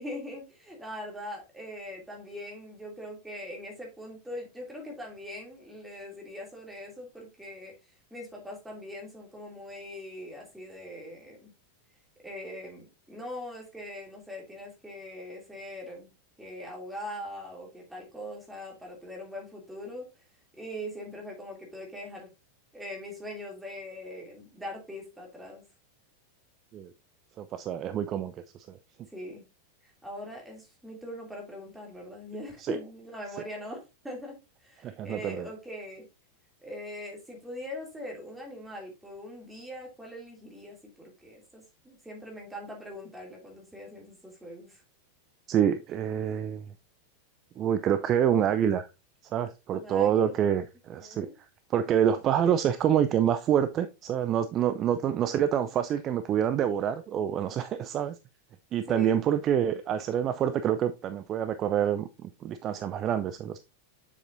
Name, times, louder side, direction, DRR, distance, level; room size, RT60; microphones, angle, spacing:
voice 1, 0.0-7.7 8.1-11.5 12.2-16.1 16.4-20.1 20.5-22.3 22.7-25.6 29.1-29.4 30.0-36.1 36.6-44.8 49.7-50.4 51.0-51.3 58.9-59.2, left 1 dB, 5° right, -1 dB, 2.8 m, -41 dB
voice 2, 27.4-28.4 28.7-28.8 32.6-32.8 34.8-35.5 45.5-46.6 47.6-48.9 49.3-51.3 51.7-58.1 58.7-63.6, right 9 dB, 30° right, 11 dB, 0.4 m, -27 dB
7.1 x 7.0 x 2.6 m, 0.28 s
figure-of-eight pair, 90°, 0 cm